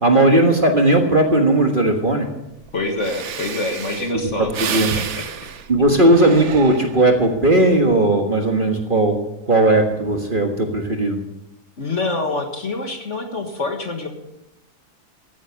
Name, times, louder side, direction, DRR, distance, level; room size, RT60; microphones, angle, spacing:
voice 1, 0.0-2.3 4.7-4.9 5.7-9.2 9.5-11.2, right 2 dB, 35° right, 3 dB, 1.6 m, -16 dB
voice 2, 2.7-5.3 5.8-6.1 11.8-14.1, left 2 dB, 50° left, 4 dB, 1.8 m, -26 dB
Breathing, 2.7-2.8 3.0-7.2 7.7-8.1, right 7 dB, 55° right, 1.1 m, -30 dB
14.5 x 9.7 x 6.9 m, 0.88 s
omnidirectional pair, 1.7 m